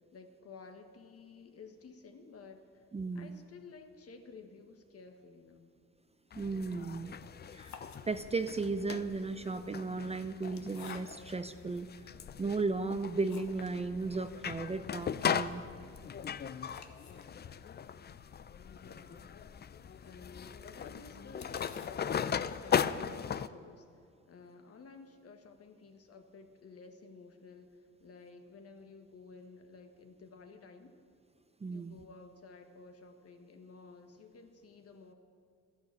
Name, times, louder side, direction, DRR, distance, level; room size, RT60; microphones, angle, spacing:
voice 1, 0.1-2.8 3.1-5.7 18.6-19.5 20.0-23.9 24.2-31.0 31.7-35.1, left 4 dB, 50° left, 6 dB, 1.5 m, -53 dB
voice 2, 2.9-3.4 6.4-7.1 7.5-7.8 8.1-11.9 12.4-15.6 31.6-32.0, right 3 dB, 20° right, 10 dB, 0.6 m, -35 dB
sound 1, 6.3-23.5, left 8 dB, 35° left, 0.5 m, -38 dB
sound 2, 7.5-8.6 9.4-11.5 12.1-12.2 12.7-13.8 14.1-14.2 14.5-14.6 14.9-22.8, left 6 dB, 65° left, 1.3 m, -55 dB
12.5 x 10.5 x 8.3 m, 2.3 s
cardioid pair, 90°, 30 cm